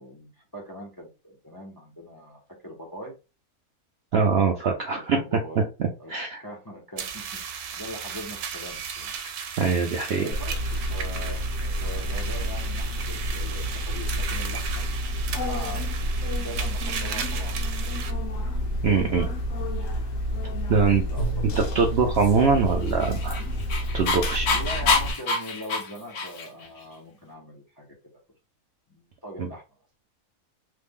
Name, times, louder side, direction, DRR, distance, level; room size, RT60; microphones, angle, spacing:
voice 1, 0.0-3.1 5.1-5.7 6.0-6.1 6.4-9.1 10.1-14.8 15.2-16.1 16.4-18.2 20.6-22.5 24.5-27.9 28.9-29.6, equal, 30° left, -1 dB, 0.4 m, -41 dB
voice 2, 4.1-5.2 6.1-6.4 9.6-10.3 18.8-19.3 20.7-21.0 21.7-23.4 23.9-24.5 29.4-29.5, right 5 dB, 65° right, 2 dB, 0.6 m, -22 dB
sound 1, 7.0-18.1, right 7 dB, 90° right, 1.1 m, -36 dB
sound 2, 10.3-25.1, equal, 65° left, 1.1 m, -29 dB
Dog, 22.8-26.7, left 4 dB, 85° left, 1.3 m, -26 dB
3.2 x 2.1 x 3.5 m, 0.30 s
omnidirectional pair, 1.6 m